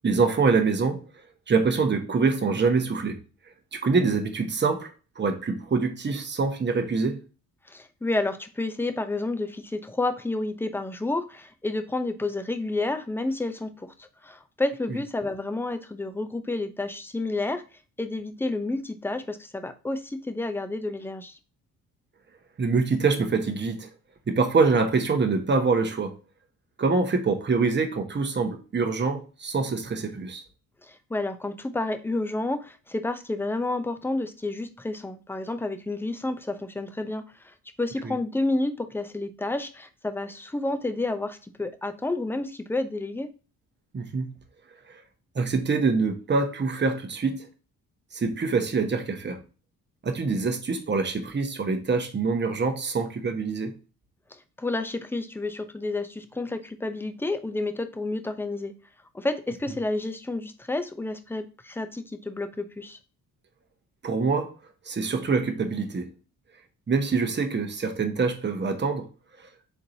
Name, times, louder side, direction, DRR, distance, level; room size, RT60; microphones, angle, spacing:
voice 1, 0.0-1.0 1.5-3.2 3.7-4.9 5.2-7.2 22.6-23.9 24.3-26.2 26.8-30.4 38.0-38.1 43.9-44.3 44.9-45.0 45.3-47.5 48.1-49.4 50.0-53.8 64.0-64.5 64.9-66.1 66.9-69.1 69.4-69.5, right 4 dB, 25° right, 1.0 m, -25 dB
voice 2, 7.7-17.6 18.0-21.4 30.8-43.3 54.6-58.7 59.1-63.0, left 2 dB, 5° left, 0.6 m, -30 dB
4.4 x 3.7 x 2.7 m
hypercardioid pair, 45°, 42 cm